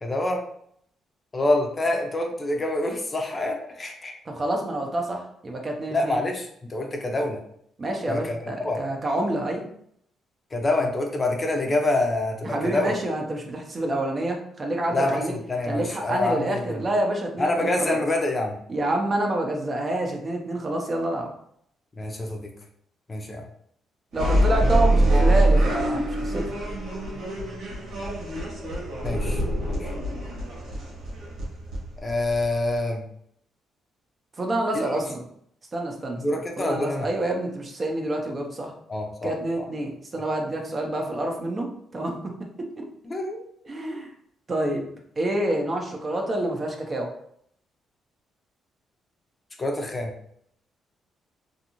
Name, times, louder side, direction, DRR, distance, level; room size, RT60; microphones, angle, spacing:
voice 1, 0.0-0.4 1.3-4.1 5.9-7.4 8.1-8.8 10.5-12.9 14.9-16.8 17.4-18.6 22.0-22.5 23.1-23.4 29.0-29.4 29.7-29.9 32.0-33.0 34.7-34.9 36.2-37.1 38.9-39.3 43.0-43.4 43.8-44.0 49.6-50.1, left 2 dB, 30° left, 2 dB, 0.5 m, -26 dB
voice 2, 4.3-6.2 7.8-9.6 12.4-15.3 15.6-18.0 18.7-21.3 24.1-26.4 34.4-35.2 35.7-36.2 36.6-38.7 39.2-41.7 41.9-42.3 42.8-42.9 43.6-44.1 44.5-44.8 45.2-47.1, right 1 dB, 35° right, 2 dB, 0.6 m, -28 dB
sound 1, 24.1-32.8, right 1 dB, 80° right, 1.2 m, -24 dB
2.6 x 2.5 x 2.9 m, 0.69 s
cardioid pair, 90°, 0 cm